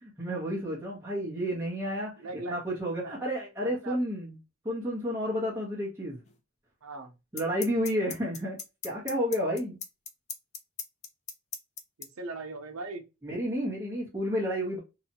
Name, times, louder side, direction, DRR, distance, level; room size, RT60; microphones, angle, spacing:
voice 1, 0.0-4.4 4.6-6.2 7.3-9.8 13.2-14.8, equal, 10° right, 0.9 m, -31 dB
voice 2, 2.2-2.6 3.0-3.1 3.6-4.0 6.8-7.1 12.2-13.0, right 2 dB, 75° right, 0.7 m, -39 dB
sound 1, 6.3-6.4 7.4-12.0, left 7 dB, 30° left, 0.4 m, -37 dB
2.8 x 2.3 x 2.7 m
head